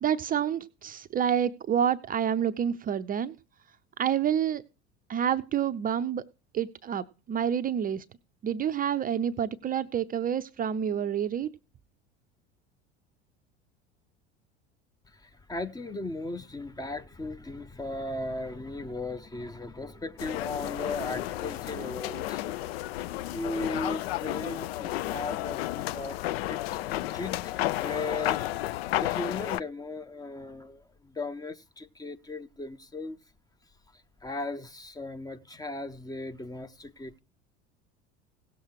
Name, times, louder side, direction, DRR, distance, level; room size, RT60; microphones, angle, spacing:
voice 1, 0.0-3.3 4.0-4.6 5.1-6.2 6.5-8.0 8.4-11.5, right 9 dB, 25° right, 0.6 m, -28 dB
voice 2, 15.1-22.6 23.3-26.2 26.4-28.4 29.0-33.2 34.2-37.2, left 2 dB, 10° left, 0.7 m, -37 dB
sound 1, 20.2-29.6, left 15 dB, 65° left, 0.5 m, -32 dB
17.0 x 7.2 x 4.6 m
figure-of-eight pair, 75°, 33 cm